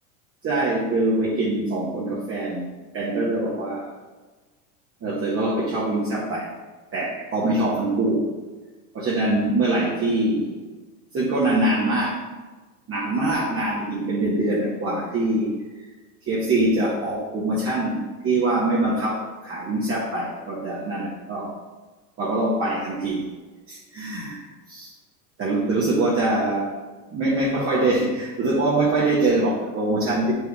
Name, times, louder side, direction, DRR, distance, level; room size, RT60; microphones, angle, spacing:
voice 1, 0.4-2.7 2.9-3.9 5.0-6.5 6.9-8.3 8.9-10.6 11.1-12.2 12.9-15.6 16.2-21.5 22.2-23.3 23.7-24.4 24.7-24.9 25.4-26.7 27.1-30.3, right 2 dB, 30° right, -5 dB, 1.4 m, -23 dB
8.0 x 4.7 x 3.5 m, 1.2 s
hypercardioid pair, 100°, 46 cm